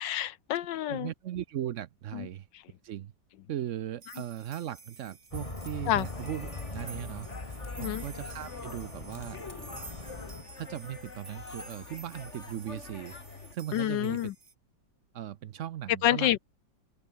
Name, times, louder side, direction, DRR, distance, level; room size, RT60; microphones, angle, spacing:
voice 1, 0.0-1.1 2.1-2.3 5.9-6.1 7.8-8.0 13.7-14.3 16.0-16.4, left 12 dB, 75° left, 1.4 m, -28 dB
voice 2, 0.9-2.5 2.8-3.1 3.5-9.4 10.6-13.2 13.5-14.2 15.1-16.4, right 11 dB, 75° right, 0.6 m, -38 dB
sound 1, 4.0-14.5, right 4 dB, 50° right, 3.3 m, -51 dB
Bus, 5.3-10.4, left 2 dB, 20° left, 1.8 m, -41 dB
sound 2, 6.0-13.5, left 4 dB, 40° left, 2.2 m, -46 dB
omnidirectional pair, 2.0 m